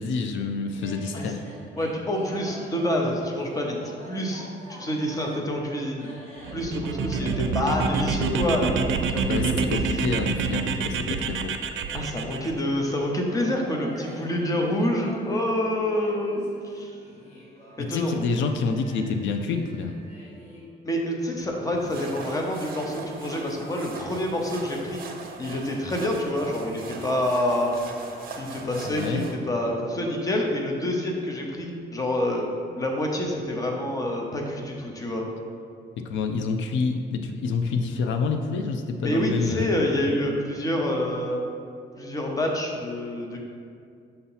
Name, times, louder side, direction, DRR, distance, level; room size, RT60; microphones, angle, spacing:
voice 1, 0.0-1.4 9.3-11.6 17.8-20.0 28.8-29.2 36.0-39.7, left 4 dB, 80° left, 6 dB, 0.4 m, -28 dB
sound 1, 0.7-20.6, equal, 35° left, 1.4 m, -46 dB
voice 2, 1.8-3.8 4.1-4.5 4.8-6.1 6.5-9.6 11.9-16.5 16.7-16.9 17.8-18.1 20.8-25.0 25.4-27.7 28.4-32.5 32.7-35.2 39.0-41.4 42.0-43.4, left 1 dB, 20° left, 0 dB, 0.7 m, -27 dB
sound 2, 6.4-12.5, right 4 dB, 85° right, 0.4 m, -27 dB
sound 3, 21.7-29.4, right 4 dB, 50° right, 0.7 m, -40 dB
6.7 x 2.8 x 5.5 m, 2.3 s
cardioid pair, 160°, 19 cm